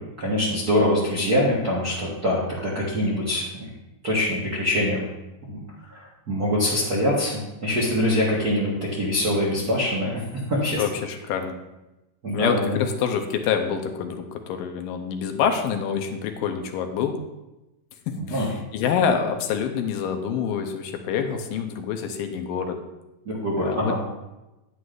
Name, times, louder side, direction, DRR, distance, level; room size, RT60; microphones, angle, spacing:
voice 1, 0.2-3.7 4.0-5.0 5.5-5.6 5.9-10.2 10.5-10.8 12.2-12.8 18.2-18.5 23.2-24.0, left 1 dB, 55° right, -6 dB, 1.0 m, -24 dB
voice 2, 10.8-11.6 12.3-17.2 18.1-22.8 23.6-24.0, left 7 dB, 90° left, 5 dB, 2.4 m, -26 dB
10.0 x 9.4 x 2.5 m, 1.0 s
omnidirectional pair, 3.9 m